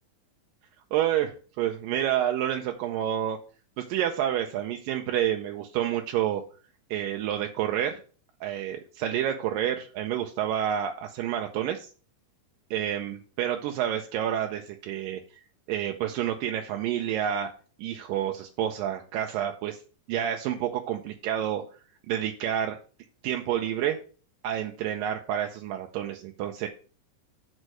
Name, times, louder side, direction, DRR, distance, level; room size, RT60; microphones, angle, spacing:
voice 1, 0.9-3.4 3.8-6.4 6.9-8.0 8.4-11.9 12.7-15.2 15.7-17.5 17.8-19.8 20.1-21.6 22.1-22.8 23.2-24.0 24.4-26.7, right 10 dB, 80° right, 4 dB, 2.3 m, -29 dB
6.4 x 5.2 x 6.3 m, 0.40 s
omnidirectional pair, 4.0 m